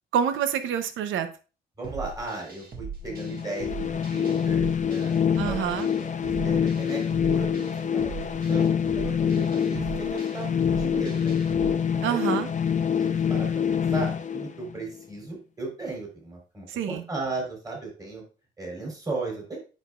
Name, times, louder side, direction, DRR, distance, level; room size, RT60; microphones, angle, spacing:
voice 1, 0.1-1.3 5.4-5.9 12.0-12.5 16.7-17.0, right 8 dB, 80° right, 10 dB, 0.8 m, -27 dB
voice 2, 1.8-5.1 5.4-5.6 6.0-11.3 12.1-12.4 13.0-18.2 18.6-19.6, right 3 dB, 20° right, -2 dB, 3.8 m, -36 dB
sound 1, 1.8-11.7, right 4 dB, 45° right, 1.8 m, -40 dB
sound 2, 3.1-15.0, left 7 dB, 40° left, 0.6 m, -26 dB
8.1 x 6.0 x 2.4 m, 0.34 s
cardioid pair, 90°, 20 cm